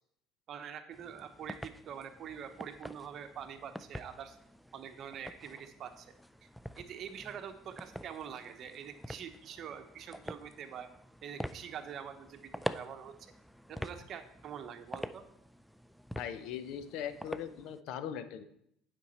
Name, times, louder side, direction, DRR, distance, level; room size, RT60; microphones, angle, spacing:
voice 1, 0.5-4.4 4.7-6.1 6.8-10.9 11.2-13.1 13.7-15.2, right 8 dB, 50° right, 7 dB, 0.9 m, -45 dB
sound 1, 0.9-17.8, equal, ahead, 0.4 m, -46 dB
voice 2, 16.2-18.4, left 9 dB, 70° left, 12 dB, 0.6 m, -40 dB
8.4 x 5.2 x 4.2 m, 0.74 s
hypercardioid pair, 75°, 0 cm